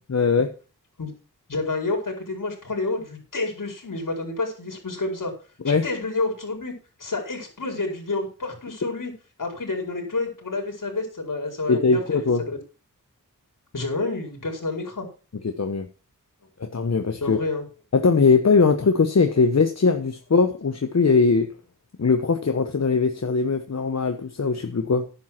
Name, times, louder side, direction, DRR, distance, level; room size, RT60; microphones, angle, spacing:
voice 1, 0.1-0.5 5.6-5.8 11.7-12.4 15.4-15.9 16.6-17.4 17.9-21.5 22.0-25.1, left 4 dB, 50° left, 6 dB, 1.2 m, -20 dB
voice 2, 1.5-5.3 5.6-6.7 7.0-9.1 9.4-12.6 13.7-15.1 17.2-17.7, left 3 dB, 70° left, 2 dB, 4.7 m, -29 dB
10.5 x 7.8 x 5.9 m, 0.35 s
wide cardioid pair, 60°, 33 cm